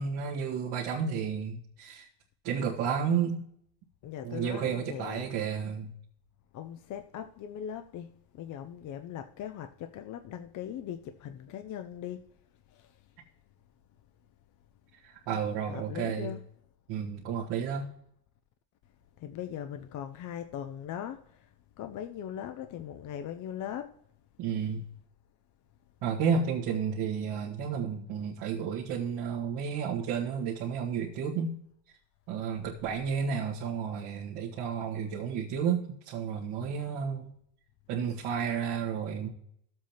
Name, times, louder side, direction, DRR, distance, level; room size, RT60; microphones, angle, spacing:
voice 1, 0.0-2.1 2.4-3.4 4.2-5.9 15.0-16.3 16.9-17.9 24.4-24.9 26.0-31.6 32.3-37.3 37.9-39.3, right 7 dB, 65° right, 1.7 m, -32 dB
voice 2, 4.0-5.3 6.5-12.2 12.7-12.9 15.7-16.4 19.2-21.4 21.8-23.9, left 10 dB, 40° left, 0.5 m, -40 dB
13.5 x 7.6 x 2.9 m
cardioid pair, 140°, 50 cm